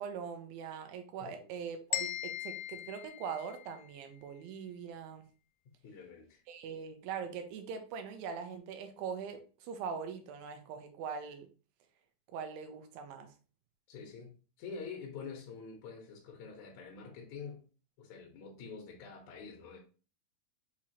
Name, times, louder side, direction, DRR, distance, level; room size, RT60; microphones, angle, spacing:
voice 1, 0.0-5.2 6.5-11.5 12.3-13.3, right 6 dB, 80° right, 2.4 m, -42 dB
sound 1, 1.9-3.9, left 14 dB, 85° left, 2.4 m, -39 dB
voice 2, 5.8-6.4 13.9-17.6 18.0-19.8, left 5 dB, 70° left, 1.8 m, -46 dB
6.1 x 2.9 x 2.8 m
omnidirectional pair, 4.3 m